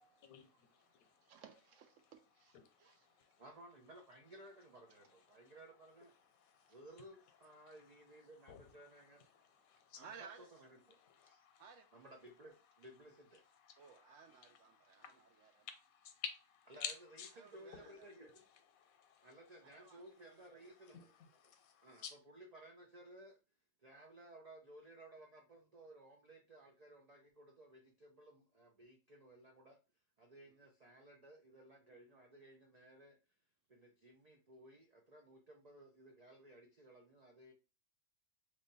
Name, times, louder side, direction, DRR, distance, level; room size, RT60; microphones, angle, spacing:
voice 1, 0.0-1.4 2.6-3.4 4.8-10.0 10.8-16.4 16.8-22.1, left 7 dB, 80° left, 1.1 m, -54 dB
voice 2, 0.8-3.4 5.3-5.5 6.5-6.8 9.6-10.5 11.6-11.9 13.8-15.7 17.4-18.0 19.6-20.7 30.4-30.6, right 6 dB, 70° right, 0.9 m, -60 dB
voice 3, 3.4-6.1 6.7-9.2 9.9-10.1 10.6-10.8 11.2-11.4 11.9-13.4 14.3-14.4 16.7-16.8 17.4-18.4 19.2-21.1 21.4-21.5 21.8-22.0 22.3-23.4 23.8-29.8 30.2-33.2 33.7-37.5, right 1 dB, 85° right, 0.3 m, -58 dB
3.1 x 2.2 x 3.9 m
omnidirectional pair, 1.5 m